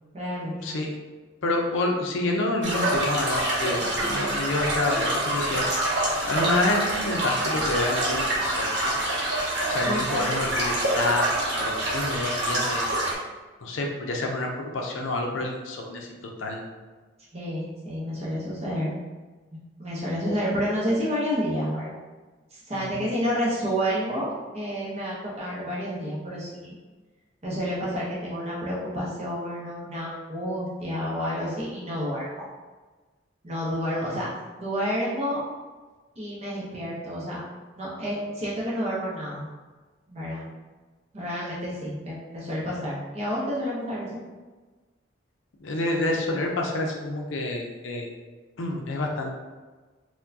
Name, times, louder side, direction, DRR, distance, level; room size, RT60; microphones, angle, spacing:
voice 1, 0.1-0.7 3.8-4.0 9.8-10.1 17.3-19.0 19.5-21.9 22.5-26.8 27.4-32.5 33.4-34.3 34.6-35.4 36.2-37.4 37.8-39.5 40.1-40.5 41.1-44.2, equal, 35° right, -6 dB, 0.7 m, -30 dB
voice 2, 1.4-5.6 6.2-8.9 9.7-11.3 11.6-12.9 13.6-16.1 16.4-16.6 22.7-23.1 34.0-34.2 45.6-48.1 48.6-49.4, left 2 dB, 80° left, 1 dB, 0.5 m, -28 dB
sound 1, 2.6-13.1, right 1 dB, 60° right, 1.0 m, -26 dB
4.5 x 2.1 x 2.6 m, 1.3 s
head